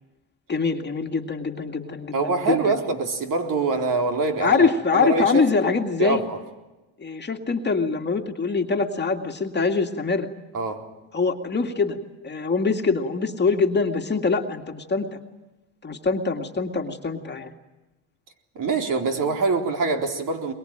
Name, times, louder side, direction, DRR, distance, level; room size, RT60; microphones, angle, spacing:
voice 1, 0.5-2.7 4.4-6.2 7.0-10.3 11.1-12.0 12.2-15.2 15.8-17.5, left 4 dB, 25° left, 2.2 m, -24 dB
voice 2, 2.1-5.4 6.0-6.4 10.5-10.9 18.6-20.5, right 4 dB, 50° right, 4.0 m, -24 dB
23.0 x 22.0 x 9.0 m
cardioid pair, 100°, 41 cm